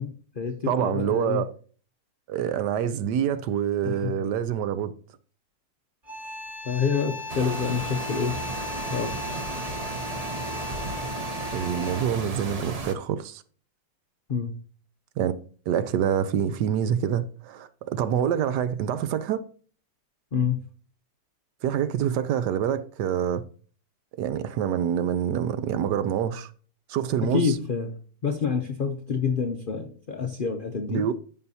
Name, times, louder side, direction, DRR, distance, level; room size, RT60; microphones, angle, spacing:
voice 1, 0.0-1.4 3.8-4.1 6.6-8.4 8.9-9.4 14.3-14.5 20.3-20.6 27.2-27.9 28.2-31.1, left 6 dB, 80° left, 0.4 m, -27 dB
voice 2, 0.7-1.5 2.3-4.9 11.5-13.4 15.2-15.3 15.7-19.4 21.6-23.4 24.2-26.5 26.9-27.6 30.9-31.1, right 9 dB, 75° right, 1.2 m, -26 dB
sound 1, 6.0-12.3, left 3 dB, 25° right, 2.1 m, -37 dB
sound 2, 7.3-12.9, right 3 dB, 50° right, 0.4 m, -34 dB
13.5 x 5.6 x 2.7 m
omnidirectional pair, 1.9 m